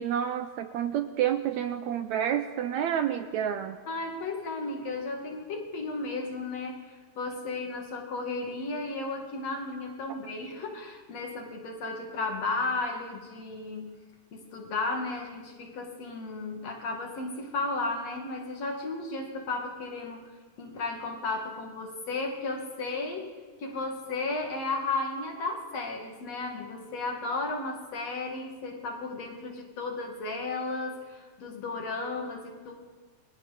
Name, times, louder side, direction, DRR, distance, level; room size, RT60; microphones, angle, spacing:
voice 1, 0.0-3.8, right 10 dB, 75° right, 9 dB, 1.8 m, -29 dB
voice 2, 3.9-14.0 14.3-20.2 20.6-32.7, left 3 dB, 55° left, 1 dB, 3.2 m, -34 dB
29.0 x 23.0 x 4.2 m, 1.5 s
omnidirectional pair, 3.8 m